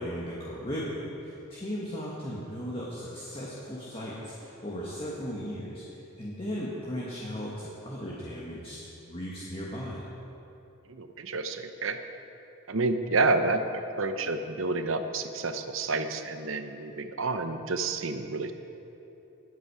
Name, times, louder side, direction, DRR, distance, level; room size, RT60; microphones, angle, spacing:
voice 1, 0.0-8.8 9.1-10.0, equal, 25° left, -6 dB, 1.6 m, -36 dB
voice 2, 10.9-12.0 12.7-18.5, right 3 dB, 70° right, 8 dB, 0.8 m, -29 dB
20.5 x 8.4 x 4.9 m, 3.0 s
head